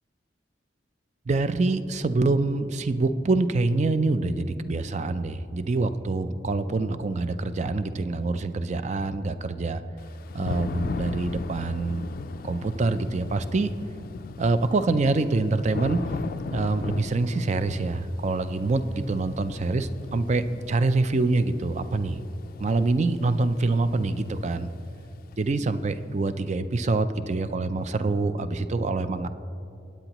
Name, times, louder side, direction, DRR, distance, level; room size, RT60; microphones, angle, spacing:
voice 1, 1.3-9.8 10.3-12.0 12.4-13.7 14.4-16.0 16.5-22.2 22.6-24.7 25.4-29.3, right 3 dB, 40° right, 12 dB, 0.4 m, -25 dB
Thunder / Rain, 10.0-25.7, left 4 dB, 55° left, 0.3 m, -38 dB
19.5 x 8.9 x 3.0 m, 2.6 s
head